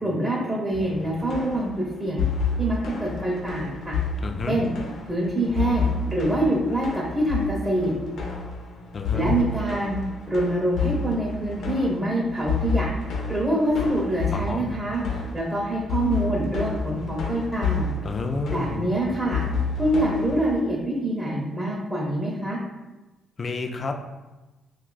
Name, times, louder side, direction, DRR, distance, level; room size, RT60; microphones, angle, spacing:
voice 1, 0.0-2.3 2.6-4.0 4.5-4.7 5.1-7.9 9.1-10.0 10.3-12.9 13.3-17.9 18.5-19.4 19.8-22.6, right 1 dB, 10° right, -3 dB, 0.6 m, -25 dB
sound 1, 0.7-20.6, left 4 dB, 75° left, 0.7 m, -30 dB
voice 2, 4.2-4.6 8.9-9.4 14.3-14.7 18.0-18.9 23.4-24.0, left 3 dB, 40° left, 5 dB, 0.3 m, -30 dB
2.5 x 2.3 x 3.8 m, 1.1 s
cardioid pair, 90°, 0 cm